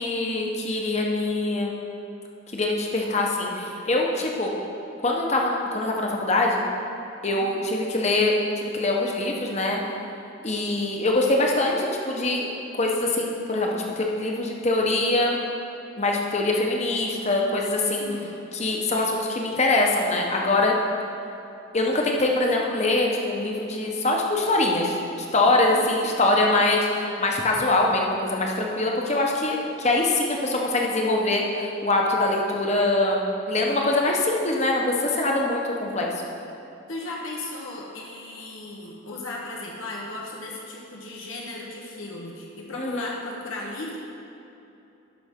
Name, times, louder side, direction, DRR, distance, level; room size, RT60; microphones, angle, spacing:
voice 1, 0.0-1.7 2.5-4.5 5.0-6.6 7.2-9.8 10.4-12.5 12.8-15.4 16.0-18.1 18.5-20.7 21.7-25.0 25.3-36.1 42.7-43.1, left 2 dB, 35° left, 0 dB, 0.9 m, -23 dB
voice 2, 17.9-18.3 25.6-26.1 36.9-44.0, left 2 dB, 75° left, -3 dB, 1.0 m, -36 dB
12.0 x 5.6 x 3.6 m, 2.9 s
head